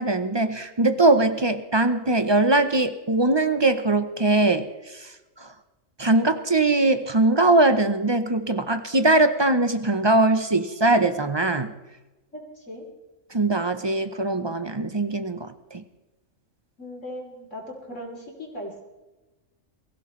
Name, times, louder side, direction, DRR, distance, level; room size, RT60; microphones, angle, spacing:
voice 1, 0.0-5.1 5.4-5.5 6.0-11.7 13.3-15.8, right 2 dB, 25° right, 10 dB, 0.7 m, -21 dB
voice 2, 12.3-12.9 16.8-18.7, equal, 65° left, -1 dB, 3.7 m, -38 dB
23.0 x 15.5 x 3.2 m, 1.1 s
omnidirectional pair, 1.4 m